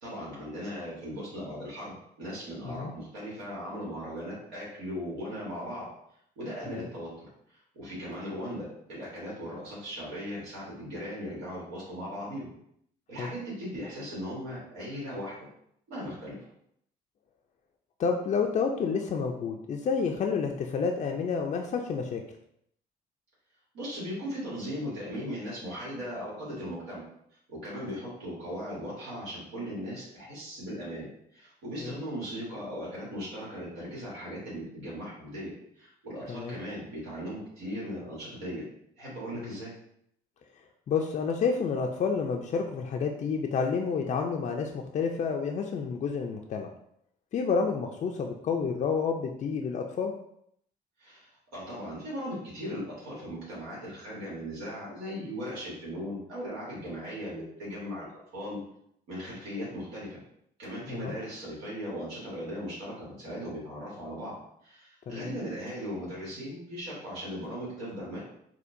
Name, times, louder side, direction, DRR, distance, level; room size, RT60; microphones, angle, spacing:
voice 1, 0.0-5.8 6.4-12.5 13.1-15.4 15.9-16.4 23.7-27.0 27.5-31.1 31.3-35.5 35.8-38.6 39.0-39.7 51.0-58.1 58.3-58.6 59.1-60.2 60.6-64.4 64.6-68.2, equal, 90° right, -7 dB, 1.4 m, -38 dB
voice 2, 18.0-22.2 31.8-31.9 36.3-36.5 39.3-39.6 40.9-46.7 47.3-50.1 60.9-61.1 65.1-65.3, left 5 dB, 40° left, 2 dB, 0.4 m, -29 dB
4.3 x 2.2 x 2.6 m, 0.72 s
supercardioid pair, 80°, 18 cm